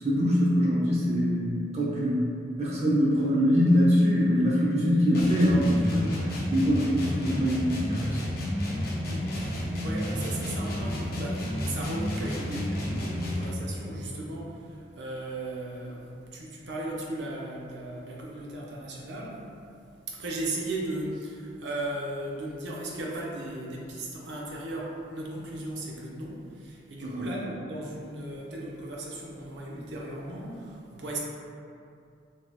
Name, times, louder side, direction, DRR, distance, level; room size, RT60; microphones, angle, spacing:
voice 1, 0.0-2.3 2.6-8.2 27.0-27.2, equal, 40° right, -6 dB, 0.7 m, -23 dB
sound 1, 5.1-13.6, left 1 dB, 60° left, 0.5 m, -31 dB
voice 2, 9.1-19.5 20.1-31.2, right 1 dB, 85° right, -3 dB, 0.6 m, -36 dB
3.2 x 2.8 x 2.3 m, 2.4 s
head